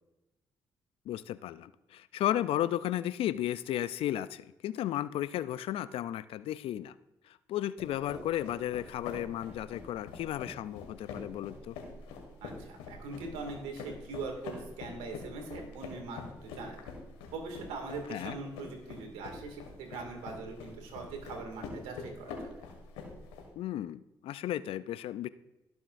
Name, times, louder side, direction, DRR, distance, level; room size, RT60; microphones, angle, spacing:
voice 1, 1.1-6.9 7.3-11.8 18.1-18.4 23.6-25.3, left 12 dB, 70° left, 16 dB, 0.4 m, -34 dB
sound 1, 7.8-23.4, left 4 dB, 85° left, 1.8 m, -45 dB
voice 2, 12.4-16.8 17.3-22.4, right 3 dB, 80° right, 3 dB, 2.2 m, -41 dB
17.5 x 7.2 x 2.6 m, 0.99 s
hypercardioid pair, 50°, 10 cm